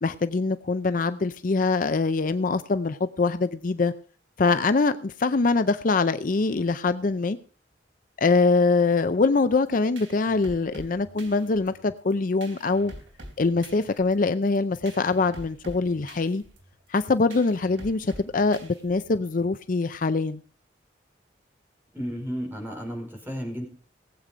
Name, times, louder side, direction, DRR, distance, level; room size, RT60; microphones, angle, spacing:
voice 1, 0.0-3.9 4.4-7.4 8.2-12.9 13.4-16.4 16.9-20.4, left 3 dB, 45° left, 0.5 m, -23 dB
sound 1, 9.7-19.3, right 1 dB, 90° right, 3.7 m, -46 dB
voice 2, 21.9-23.6, equal, 10° right, 5.0 m, -33 dB
18.0 x 8.2 x 5.0 m
head